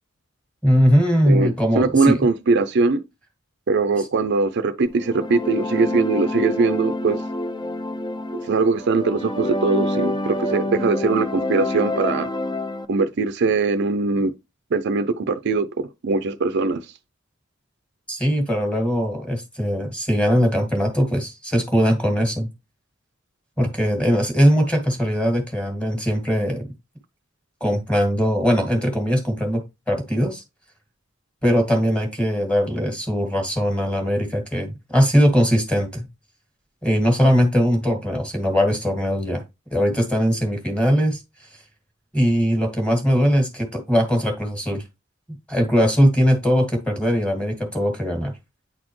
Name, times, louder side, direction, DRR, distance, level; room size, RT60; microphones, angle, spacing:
voice 1, 0.6-2.3 4.0-4.1 18.1-22.5 23.6-26.7 27.6-30.4 31.4-36.1 36.8-39.4 39.7-41.2 42.1-44.8 45.5-48.3, equal, 5° left, 1.9 m, -20 dB
voice 2, 1.3-3.0 3.7-7.2 8.3-12.3 12.9-14.3 14.7-16.8, right 4 dB, 60° right, 0.5 m, -21 dB
sound 1, 4.9-12.9, left 1 dB, 25° left, 0.6 m, -27 dB
9.3 x 4.2 x 3.1 m
head